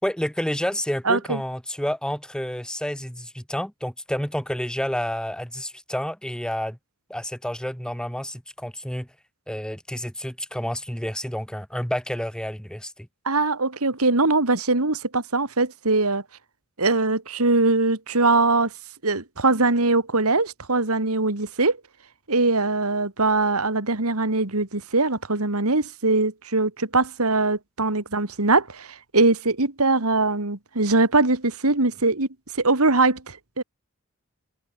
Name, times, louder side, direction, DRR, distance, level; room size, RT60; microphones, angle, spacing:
voice 1, 0.0-6.8 7.1-9.1 9.5-12.9, equal, 5° left, 2.4 m, -29 dB
voice 2, 1.1-1.4 13.2-16.2 16.8-18.7 19.0-21.8 22.3-28.9 29.1-32.3 32.6-33.6, right 3 dB, 75° right, 2.7 m, -22 dB
head